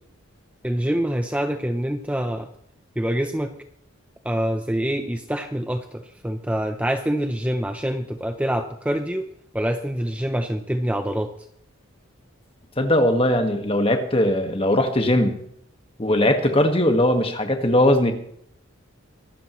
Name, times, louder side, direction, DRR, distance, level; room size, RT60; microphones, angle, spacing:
voice 1, 0.6-2.5 3.0-3.5 4.2-9.3 9.5-11.4, equal, 5° right, 6 dB, 0.6 m, -25 dB
voice 2, 12.8-15.4 16.0-18.1, left 1 dB, 25° left, 5 dB, 1.6 m, -19 dB
23.5 x 13.0 x 3.1 m, 0.69 s
head